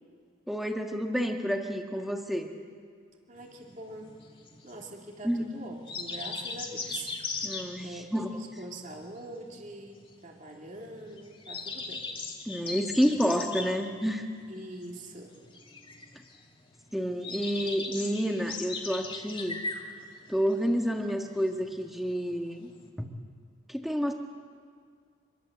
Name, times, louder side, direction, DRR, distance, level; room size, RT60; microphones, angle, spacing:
voice 1, 0.5-2.5 5.2-5.5 7.4-8.3 12.5-14.2 16.9-19.6 20.3-22.7 23.0-23.1 23.7-24.1, equal, ahead, 3 dB, 1.8 m, -29 dB
voice 2, 3.3-4.1 4.6-7.5 7.8-12.0 14.5-15.3, right 2 dB, 40° right, 0 dB, 2.7 m, -44 dB
sound 1, 3.4-22.9, left 4 dB, 25° left, 2.1 m, -40 dB
26.5 x 21.5 x 8.0 m, 2.1 s
head